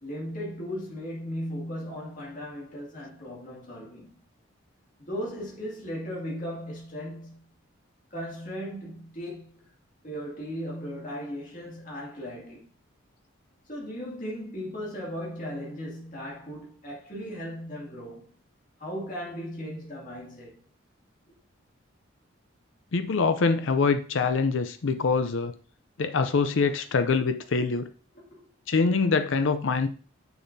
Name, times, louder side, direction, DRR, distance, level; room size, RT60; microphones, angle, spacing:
voice 1, 0.0-4.2 5.0-7.5 8.1-9.7 10.0-12.7 13.7-18.4 18.8-20.6 28.1-28.5, equal, 40° left, 2.3 m, -37 dB
voice 2, 22.9-25.5 26.0-27.9 28.7-29.9, left 4 dB, 70° left, 0.5 m, -24 dB
6.8 x 6.3 x 2.7 m
head